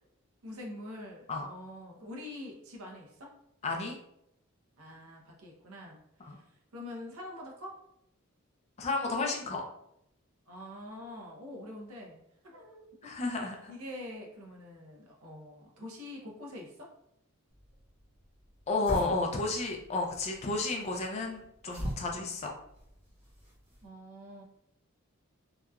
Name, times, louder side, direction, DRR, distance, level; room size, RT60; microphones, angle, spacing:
voice 1, 0.4-3.3 4.8-6.4 6.7-7.7 10.5-12.2 12.4-13.1 13.4-16.9 23.8-24.4, left 1 dB, 80° right, -1 dB, 0.7 m, -45 dB
voice 2, 3.6-4.0 6.3-6.4 8.8-9.6 13.0-13.7 18.7-22.5, left 3 dB, 30° left, 1 dB, 0.3 m, -32 dB
sound 1, 17.5-23.9, equal, 30° right, 1.1 m, -43 dB
2.8 x 2.3 x 2.2 m, 0.79 s
head